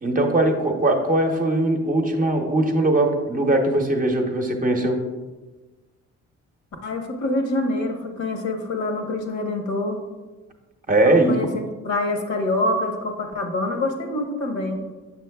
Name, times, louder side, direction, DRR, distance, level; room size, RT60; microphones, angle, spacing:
voice 1, 0.0-5.0 10.9-11.3, right 1 dB, 30° right, 3 dB, 0.8 m, -20 dB
voice 2, 6.8-10.0 11.0-14.8, left 2 dB, 65° left, 3 dB, 1.1 m, -26 dB
7.1 x 6.2 x 2.3 m, 1.2 s
cardioid pair, 90°, 30 cm